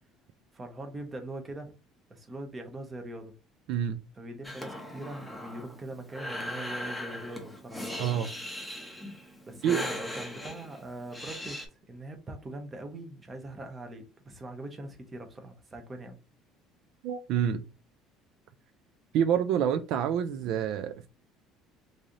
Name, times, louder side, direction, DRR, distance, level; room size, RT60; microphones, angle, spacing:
voice 1, 0.5-1.8 2.1-3.3 4.1-8.1 9.5-11.6 11.9-16.2, right 1 dB, 20° right, 0.8 m, -42 dB
voice 2, 3.7-4.0 8.0-8.3 9.6-9.8 17.0-17.6 19.1-21.1, right 9 dB, 65° right, 0.4 m, -27 dB
Breathing, 4.4-11.7, left 1 dB, 5° left, 0.7 m, -39 dB
3.2 x 2.7 x 3.7 m
cardioid pair, 135°, 0 cm